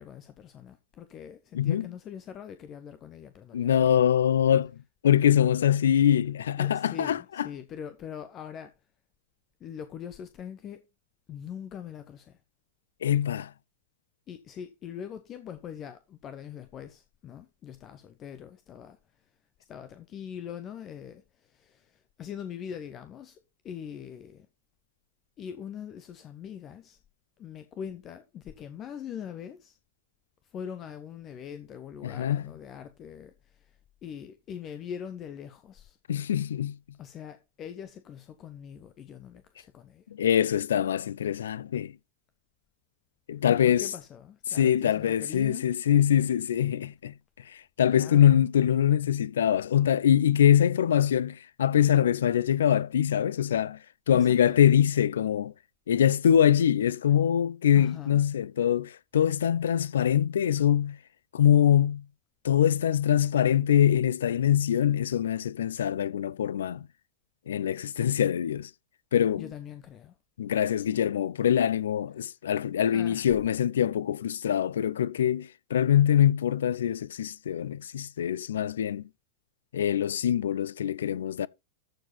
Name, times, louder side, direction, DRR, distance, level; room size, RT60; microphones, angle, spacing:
voice 1, 0.0-4.0 6.6-8.7 9.6-10.8 11.3-12.4 14.3-19.3 19.7-24.5 25.4-27.0 27.4-29.8 30.4-36.0 37.0-40.1 43.3-45.7 48.0-48.4 54.1-54.6 57.7-58.2 69.4-70.2 70.8-70.9 72.9-73.3, left 8 dB, 30° left, 0.9 m, -42 dB
voice 2, 1.5-1.9 3.5-4.7 5.0-7.5 13.0-13.5 32.0-32.4 36.1-36.7 40.1-41.9 43.3-43.9 44.6-47.1 47.8-53.8 54.1-55.5 55.9-61.0 61.3-62.0 62.4-66.9 67.5-68.7 69.1-69.4 70.4-79.0 79.7-81.5, left 9 dB, 65° left, 0.4 m, -24 dB
14.0 x 4.8 x 4.0 m
figure-of-eight pair, 90°, 0 cm